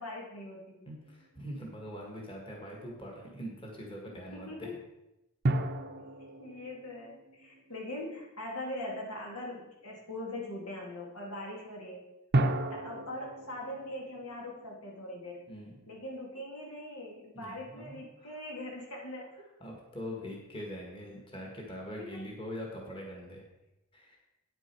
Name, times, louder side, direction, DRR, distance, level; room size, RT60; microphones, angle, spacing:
voice 1, 0.0-0.9 4.3-4.7 6.2-12.0 12.7-15.4 15.9-19.3 22.0-22.2, left 1 dB, 80° left, -2 dB, 2.6 m, -41 dB
voice 2, 0.9-4.7 15.5-15.8 17.3-18.4 19.6-23.4 23.9-24.2, equal, 25° left, -1 dB, 1.8 m, -43 dB
sound 1, 1.1-1.8 5.4-8.3 12.3-15.6, right 2 dB, 45° right, 0.7 m, -34 dB
9.2 x 8.9 x 4.6 m, 0.94 s
head